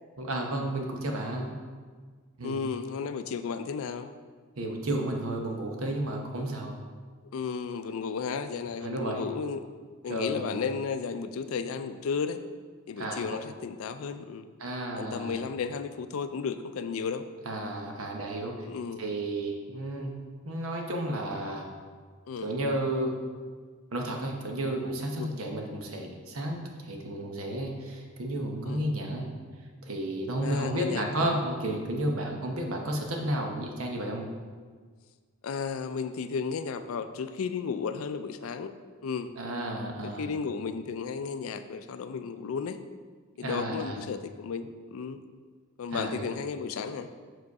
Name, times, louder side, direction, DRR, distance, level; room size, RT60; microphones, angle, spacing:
voice 1, 0.2-1.5 2.4-2.6 4.6-6.8 8.8-9.2 10.1-10.6 13.0-13.4 14.6-15.4 17.4-18.7 19.0-20.1 20.4-21.6 22.4-23.1 23.9-29.3 29.8-34.3 39.4-40.3 43.4-44.0 45.9-46.3, right 1 dB, 90° right, 1 dB, 1.0 m, -32 dB
voice 2, 2.4-4.1 7.3-9.6 10.0-12.4 12.9-14.4 15.0-17.2 18.6-19.0 22.3-22.5 24.5-24.6 25.2-25.3 28.7-28.8 30.4-31.0 35.4-38.7 39.0-39.3 40.2-42.8 43.4-45.2 45.8-47.1, left 5 dB, 80° left, 10 dB, 0.4 m, -33 dB
6.3 x 4.9 x 4.7 m, 1.5 s
head